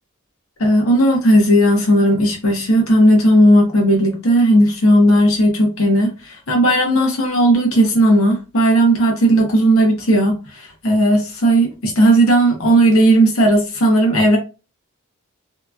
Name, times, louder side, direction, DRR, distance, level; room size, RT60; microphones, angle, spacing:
voice 1, 0.6-6.1 6.5-10.4 10.8-14.4, right 1 dB, 75° left, 0.9 m, -14 dB
2.8 x 2.4 x 2.4 m
head